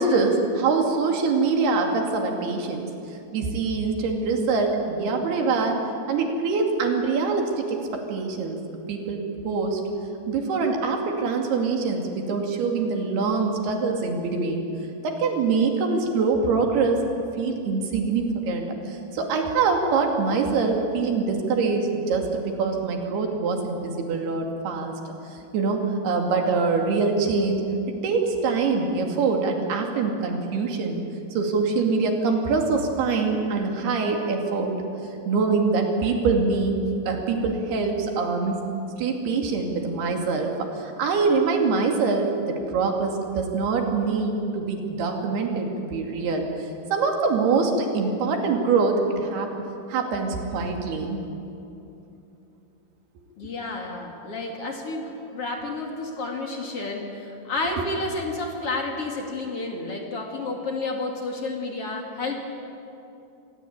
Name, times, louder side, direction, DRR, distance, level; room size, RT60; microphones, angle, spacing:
voice 1, 0.0-2.9 3.3-5.8 6.1-8.6 8.9-9.8 10.3-14.7 15.0-17.0 17.4-27.6 28.0-31.0 31.3-34.9 35.3-36.8 37.1-38.6 39.0-46.5 46.9-49.5 49.9-51.2 57.8-57.9, right 4 dB, 90° right, 2 dB, 4.5 m, -24 dB
voice 2, 53.4-62.4, left 2 dB, 40° left, 1 dB, 3.1 m, -31 dB
26.5 x 21.0 x 8.7 m, 2.8 s
omnidirectional pair, 4.4 m